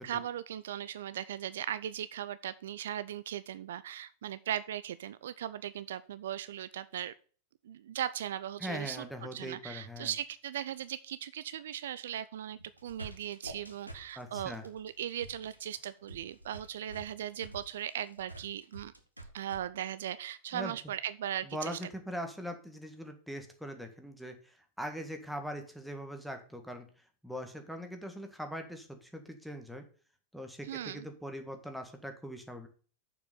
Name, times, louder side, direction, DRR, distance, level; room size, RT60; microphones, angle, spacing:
voice 1, 0.0-7.1 7.6-18.9 19.3-21.8 30.6-31.1, right 10 dB, 60° right, 15 dB, 0.4 m, -38 dB
voice 2, 8.6-10.1 14.2-14.6 20.5-20.8 21.5-24.4 24.8-26.9 27.2-29.8 30.3-32.7, equal, ahead, 5 dB, 1.7 m, -41 dB
sound 1, 12.6-19.6, right 2 dB, 85° right, 1.4 m, -48 dB
6.9 x 6.1 x 6.7 m, 0.42 s
figure-of-eight pair, 90°, 0 cm